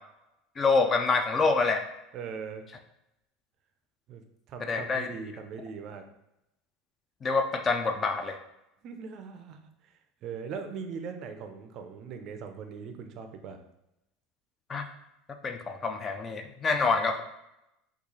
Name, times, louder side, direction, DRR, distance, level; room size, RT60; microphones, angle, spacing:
voice 1, 0.6-1.8 4.6-5.1 7.2-8.4 14.7-14.8 15.4-17.2, left 4 dB, 25° left, 6 dB, 0.3 m, -26 dB
voice 2, 2.1-2.7 4.1-4.2 4.5-6.0 8.8-9.9 10.2-13.6, right 6 dB, 45° right, 6 dB, 0.4 m, -40 dB
3.7 x 2.3 x 3.0 m, 0.87 s
supercardioid pair, 140°, 0 cm